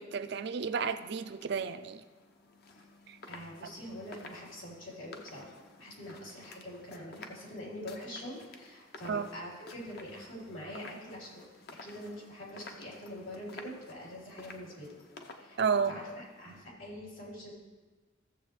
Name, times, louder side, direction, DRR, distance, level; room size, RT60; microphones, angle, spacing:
voice 1, 0.0-2.0 3.1-3.2 9.1-9.3 15.6-16.0, right 6 dB, 55° right, 11 dB, 0.4 m, -31 dB
sound 1, 0.6-16.6, left 3 dB, 55° left, 0.8 m, -53 dB
voice 2, 3.3-11.4 11.8-15.6 15.9-17.5, equal, 80° left, -5 dB, 3.6 m, -45 dB
15.5 x 7.3 x 3.1 m, 1.3 s
head